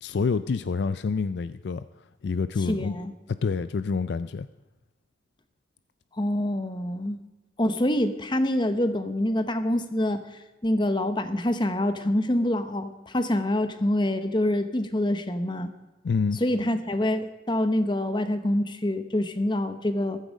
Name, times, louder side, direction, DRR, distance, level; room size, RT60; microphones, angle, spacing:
voice 1, 0.0-1.9 2.2-3.0 3.3-4.5 16.0-16.4, left 5 dB, 60° left, 0.4 m, -27 dB
voice 2, 2.7-3.1 6.1-7.2 7.6-10.2 10.6-15.7 16.4-20.2, left 1 dB, 25° left, 0.9 m, -26 dB
14.5 x 13.5 x 5.2 m
head